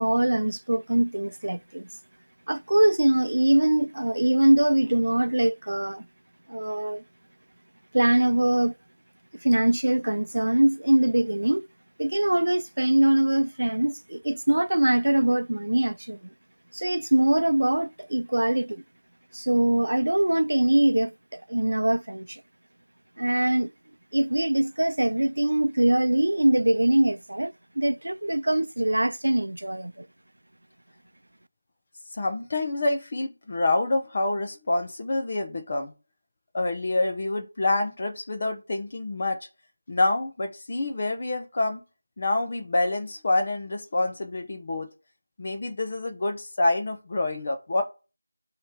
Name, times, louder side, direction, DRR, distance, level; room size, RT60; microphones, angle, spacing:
voice 1, 0.0-1.9 2.5-6.1 6.5-7.0 7.9-8.7 9.4-11.6 12.0-16.2 16.7-18.8 19.3-22.4 23.2-23.7 24.1-30.1, right 1 dB, 85° right, 0.5 m, -23 dB
voice 2, 32.2-35.9 36.5-39.4 39.9-41.8 42.2-44.9 45.4-47.8, left 2 dB, 20° left, 0.9 m, -27 dB
6.2 x 3.0 x 5.3 m
figure-of-eight pair, 180°, 0 cm